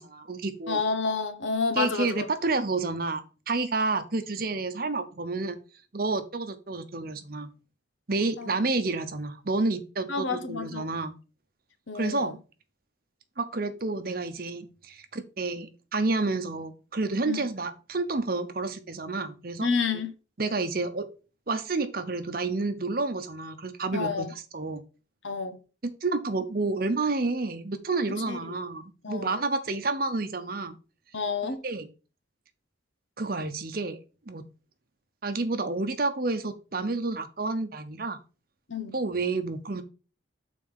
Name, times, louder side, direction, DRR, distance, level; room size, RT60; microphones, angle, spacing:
voice 1, 0.0-0.8 1.8-5.6 5.9-7.5 8.1-11.1 11.9-12.4 13.4-19.7 20.4-21.1 21.5-24.3 24.5-24.8 25.8-30.8 31.6-31.9 33.2-34.0 34.3-34.5 35.2-38.2 38.9-39.8, right 3 dB, 50° right, 0.8 m, -30 dB
voice 2, 0.7-2.3 8.4-8.5 10.1-10.9 11.9-12.4 17.3-17.4 19.6-20.1 23.9-24.3 25.2-25.6 28.3-28.6 29.0-29.3 31.1-31.6 38.7-39.0, left 5 dB, 80° left, 1.0 m, -29 dB
6.8 x 4.2 x 5.5 m
head